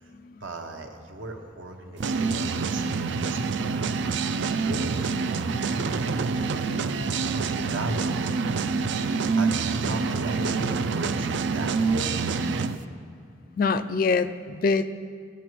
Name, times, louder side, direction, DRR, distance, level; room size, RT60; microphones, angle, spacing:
voice 1, 0.4-3.9 4.3-6.8 7.5-8.4 9.3-12.2, right 2 dB, 85° right, 3 dB, 0.9 m, -38 dB
sound 1, 2.0-12.8, right 4 dB, 70° right, 0.4 m, -26 dB
voice 2, 13.6-14.9, left 4 dB, 45° left, 10 dB, 0.3 m, -24 dB
14.0 x 9.7 x 3.0 m, 2.5 s
head